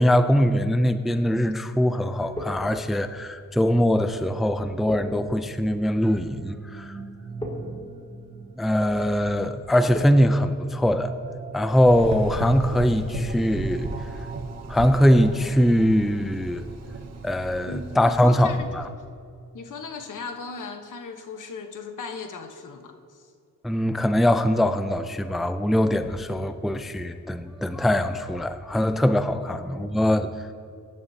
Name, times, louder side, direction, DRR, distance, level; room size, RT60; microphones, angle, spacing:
voice 1, 0.0-7.0 8.6-11.1 11.5-13.9 14.7-16.6 17.2-18.8 23.6-30.3, equal, ahead, 9 dB, 0.4 m, -22 dB
sound 1, 2.0-11.9, left 1 dB, 15° left, 2.6 m, -41 dB
sound 2, 5.8-17.6, right 4 dB, 25° right, 0.8 m, -42 dB
Gurgling / Engine, 11.9-18.6, right 2 dB, 55° right, 1.3 m, -34 dB
voice 2, 17.7-18.7 19.5-23.2 29.5-30.0, left 5 dB, 75° left, 6 dB, 1.2 m, -37 dB
22.5 x 11.0 x 2.8 m, 2.4 s
wide cardioid pair, 135°, 32 cm